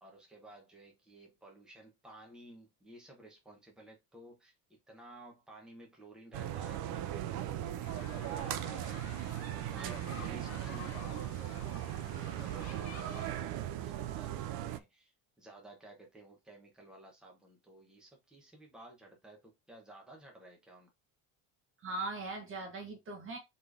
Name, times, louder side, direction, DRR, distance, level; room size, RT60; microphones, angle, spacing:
voice 1, 0.0-9.2 9.6-20.9, right 1 dB, ahead, 1.0 m, -55 dB
sound 1, 6.3-14.8, right 12 dB, 65° right, 0.6 m, -38 dB
sound 2, 7.8-13.4, left 10 dB, 40° left, 0.5 m, -52 dB
voice 2, 9.7-10.2 21.8-23.4, right 3 dB, 30° right, 1.1 m, -40 dB
4.3 x 3.3 x 3.3 m
cardioid pair, 165°, 40 cm